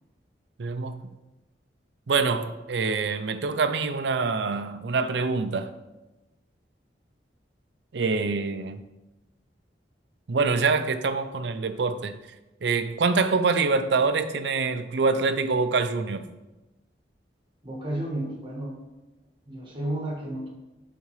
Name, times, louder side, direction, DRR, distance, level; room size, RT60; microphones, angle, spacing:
voice 1, 0.6-1.0 2.1-5.7 7.9-8.8 10.3-12.2 12.6-16.3, right 4 dB, 75° right, 0.5 m, -25 dB
voice 2, 17.6-18.8 19.5-20.5, right 1 dB, 25° right, 1.4 m, -32 dB
10.5 x 4.2 x 3.2 m
head